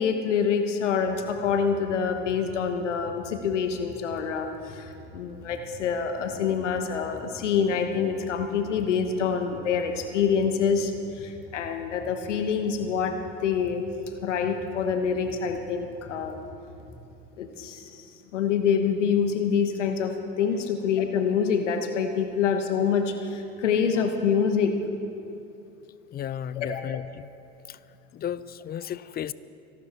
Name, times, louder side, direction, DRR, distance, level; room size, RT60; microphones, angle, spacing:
voice 1, 0.0-13.8 14.2-16.4 17.4-18.0 18.3-24.8 26.6-26.8, left 6 dB, 90° left, 6 dB, 1.2 m, -26 dB
sound 1, 1.0-17.0, left 2 dB, 50° left, 3.0 m, -48 dB
voice 2, 26.1-27.3 27.7-27.8 28.1-29.3, left 10 dB, 25° left, 18 dB, 0.5 m, -34 dB
25.0 x 12.0 x 4.4 m, 2.8 s
hypercardioid pair, 80°, 35 cm